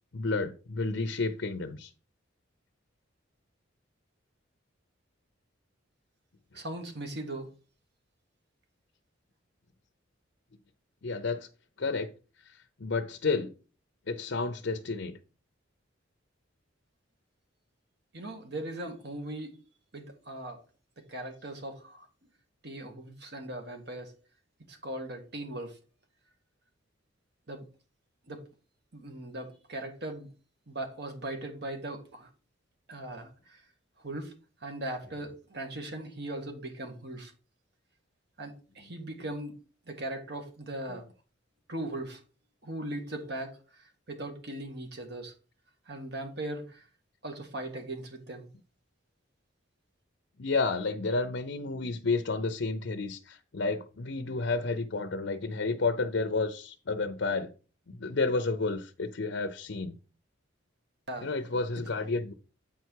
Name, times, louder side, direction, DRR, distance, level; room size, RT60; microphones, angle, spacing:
voice 1, 0.1-1.9 11.0-11.5 11.8-12.1 12.8-13.5 14.1-15.2 50.4-57.5 57.9-59.9 61.2-62.3, left 3 dB, 60° left, 0.6 m, -31 dB
voice 2, 6.5-7.5 18.1-19.6 19.9-20.6 21.1-22.1 22.6-24.1 24.7-25.8 27.5-27.6 28.3-28.4 28.9-30.3 30.7-32.3 32.9-33.6 34.0-34.3 34.6-37.3 38.4-39.6 39.9-41.0 41.7-42.2 42.6-45.3 45.8-46.8 47.2-48.5 61.1-61.3 61.7-61.8, right 1 dB, 55° right, 1.8 m, -39 dB
8.7 x 4.7 x 4.6 m
head